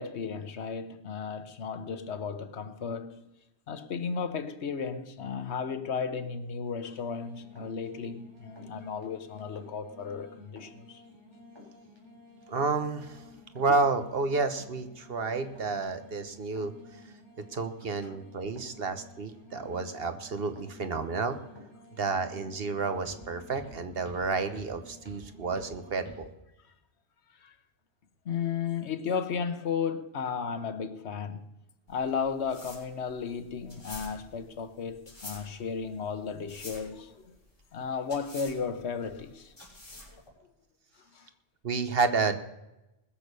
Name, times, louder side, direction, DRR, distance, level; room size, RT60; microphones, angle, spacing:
voice 1, 0.0-3.3 3.7-11.0 18.1-18.2 27.4-27.5 28.2-31.5 31.9-37.4 37.7-39.5 40.1-40.2 41.1-41.3, left 6 dB, 90° left, 1.3 m, -34 dB
sound 1, 7.1-26.2, left 1 dB, 25° right, 3.8 m, -52 dB
voice 2, 12.5-13.2 13.5-16.7 17.5-21.4 21.9-26.3 41.6-42.4, right 4 dB, 65° right, 1.3 m, -30 dB
sound 2, 31.9-40.3, left 2 dB, 20° left, 5.8 m, -48 dB
20.5 x 6.8 x 6.7 m
omnidirectional pair, 1.1 m